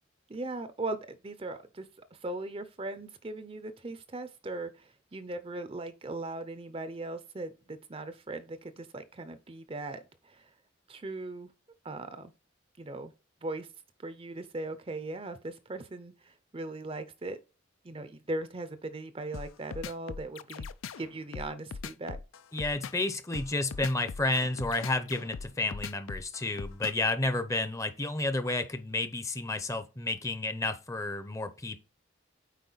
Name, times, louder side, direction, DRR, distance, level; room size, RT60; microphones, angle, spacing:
voice 1, 0.3-10.5 10.9-11.5 11.8-12.3 12.8-13.1 13.4-13.7 14.0-17.4 17.8-20.7 21.0-22.2, right 2 dB, 25° right, 0.5 m, -39 dB
sound 1, 19.3-27.1, left 5 dB, 85° left, 0.4 m, -40 dB
voice 2, 22.5-31.8, left 2 dB, 15° left, 0.6 m, -31 dB
8.3 x 4.7 x 3.9 m
head